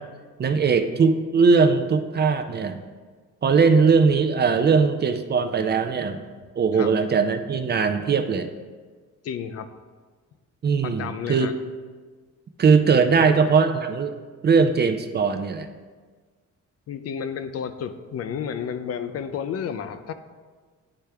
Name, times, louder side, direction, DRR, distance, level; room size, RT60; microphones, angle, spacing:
voice 1, 0.4-2.8 3.4-6.2 6.6-8.5 10.6-11.5 12.6-14.1 14.4-15.7, right 5 dB, 35° right, 8 dB, 0.5 m, -20 dB
voice 2, 9.2-9.7 10.8-11.5 13.2-13.3 16.9-20.1, left 7 dB, 55° left, 10 dB, 0.4 m, -31 dB
9.8 x 3.4 x 3.3 m, 1.5 s
cardioid pair, 90°, 30 cm